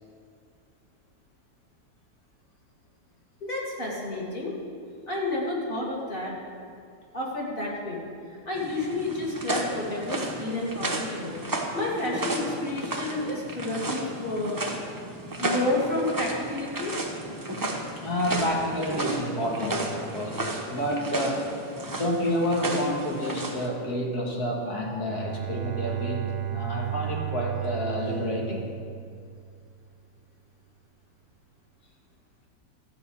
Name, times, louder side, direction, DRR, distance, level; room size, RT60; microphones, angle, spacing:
voice 1, 3.4-4.5 5.1-6.3 7.1-8.0 8.5-11.4 11.7-14.6 15.4-16.9, left 2 dB, 30° left, -5 dB, 2.3 m, -30 dB
sound 1, 8.5-23.7, right 1 dB, 20° right, 0.7 m, -33 dB
voice 2, 18.0-21.6 21.9-28.7, equal, 65° left, -1 dB, 2.2 m, -29 dB
Bowed string instrument, 25.0-29.7, right 12 dB, 70° right, 1.0 m, -34 dB
13.0 x 5.4 x 8.4 m, 2.3 s
omnidirectional pair, 1.8 m